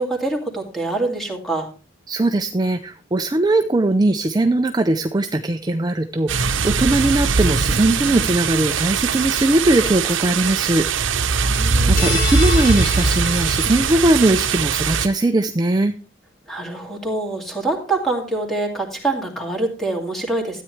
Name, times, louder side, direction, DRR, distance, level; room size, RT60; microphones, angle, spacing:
voice 1, 0.0-1.7 11.3-12.0 16.5-20.6, right 2 dB, ahead, 1 dB, 2.2 m, -25 dB
voice 2, 2.1-10.9 11.9-15.9, right 2 dB, 20° right, 7 dB, 0.4 m, -19 dB
sound 1, 6.3-15.1, right 5 dB, 75° right, 0.8 m, -21 dB
sound 2, 12.0-14.4, left 3 dB, 45° left, 3.3 m, -29 dB
13.0 x 9.1 x 3.2 m, 0.36 s
head